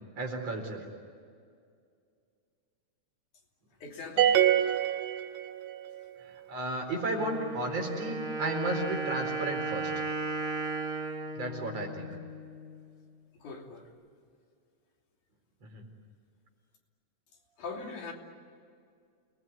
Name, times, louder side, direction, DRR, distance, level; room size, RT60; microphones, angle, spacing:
voice 1, 0.2-0.8 6.5-9.9 11.4-12.1 15.7-15.8, right 2 dB, 50° right, 2 dB, 5.4 m, -33 dB
voice 2, 3.8-4.4 4.6-4.7 13.3-13.9 17.6-18.1, left 4 dB, 75° left, 1 dB, 4.5 m, -41 dB
sound 1, 4.2-5.9, right 11 dB, 80° right, 2.5 m, -25 dB
Wind instrument woodwind instrument, 7.1-12.8, right 3 dB, 15° right, 2.5 m, -35 dB
29.5 x 20.0 x 9.7 m, 2.2 s
omnidirectional pair, 3.6 m